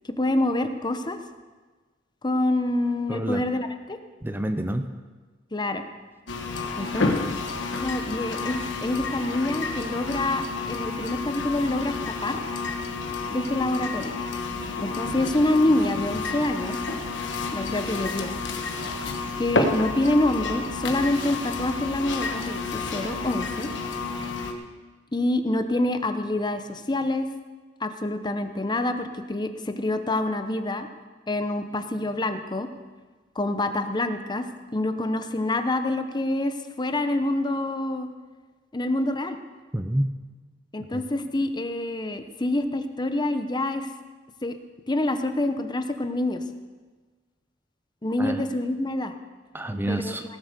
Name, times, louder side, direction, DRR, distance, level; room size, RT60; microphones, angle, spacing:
voice 1, 0.2-1.2 2.2-4.0 5.5-5.8 6.8-7.1 7.8-12.0 12.2-12.4 13.3-14.1 14.8-16.8 17.5-18.3 19.4-23.7 25.1-27.3 27.8-30.9 31.3-32.7 33.4-38.1 38.7-39.4 40.7-43.9 44.4-44.6 44.9-46.4 48.0-49.1 49.9-50.2, left 1 dB, 25° left, 8 dB, 0.8 m, -26 dB
voice 2, 3.1-3.4 4.2-4.8 39.7-40.1 40.9-41.0 48.2-48.4 49.5-50.2, right 1 dB, 10° right, 8 dB, 0.6 m, -28 dB
sound 1, 6.3-24.5, left 3 dB, 70° left, 1.3 m, -30 dB
17.5 x 7.8 x 6.7 m, 1.3 s
head